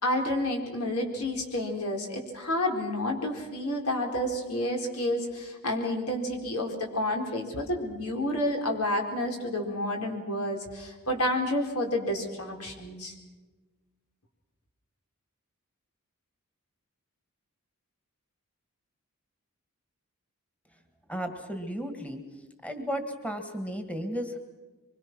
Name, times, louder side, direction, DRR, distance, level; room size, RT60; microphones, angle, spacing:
voice 1, 0.0-13.1, left 1 dB, 85° left, 1 dB, 4.4 m, -30 dB
voice 2, 21.1-22.2 22.6-24.4, equal, 5° left, 6 dB, 1.8 m, -34 dB
25.0 x 24.0 x 6.1 m, 1.3 s
head